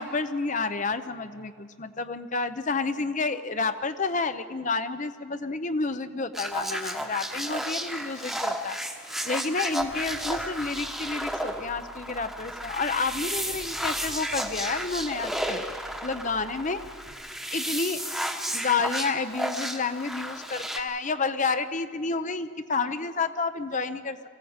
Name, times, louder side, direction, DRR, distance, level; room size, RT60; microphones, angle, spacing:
voice 1, 0.0-8.8 9.3-15.6 16.0-16.8 17.5-18.0 18.5-24.2, left 4 dB, 35° left, 11 dB, 0.7 m, -30 dB
sound 1, 6.3-20.8, right 1 dB, ahead, 1.1 m, -33 dB
sound 2, 9.8-17.1, right 1 dB, 80° right, 2.9 m, -48 dB
23.5 x 15.5 x 8.0 m, 2.1 s
head